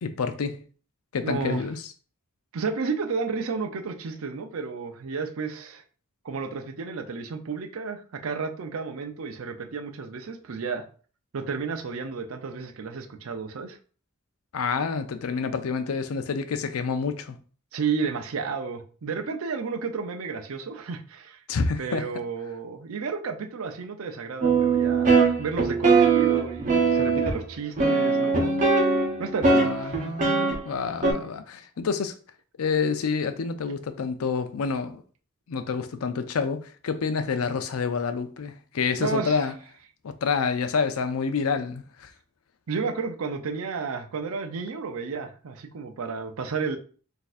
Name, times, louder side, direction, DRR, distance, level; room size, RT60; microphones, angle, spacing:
voice 1, 0.0-0.6 1.1-1.8 14.5-17.4 21.5-22.1 29.6-32.1 32.6-35.0 35.5-39.5 40.0-42.1, left 5 dB, 85° left, 0.4 m, -28 dB
voice 2, 1.2-1.6 2.5-5.8 6.2-10.8 11.3-13.8 17.7-21.4 21.8-28.5 29.2-30.0 39.0-39.4 42.7-46.8, right 5 dB, 70° right, 0.5 m, -32 dB
sound 1, 24.4-27.4 27.8-30.5 31.0-31.1, right 4 dB, 40° right, 0.8 m, -21 dB
4.0 x 2.7 x 2.5 m
head